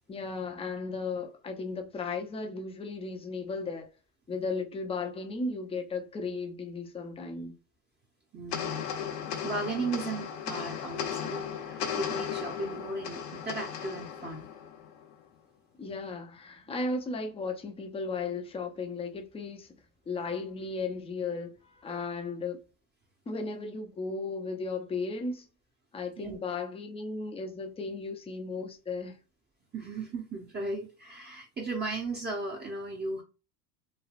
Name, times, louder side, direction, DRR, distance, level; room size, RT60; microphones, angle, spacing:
voice 1, 0.1-3.9 4.3-7.6 15.8-19.7 20.1-22.6 23.3-25.5 25.9-29.2, left 3 dB, 10° left, 0.5 m, -35 dB
voice 2, 8.3-8.9 9.4-14.5 26.2-26.4 29.7-33.2, right 3 dB, 20° right, 0.8 m, -36 dB
sound 1, 8.5-15.2, left 8 dB, 70° left, 0.9 m, -36 dB
3.2 x 2.3 x 2.4 m
hypercardioid pair, 85°, 50 cm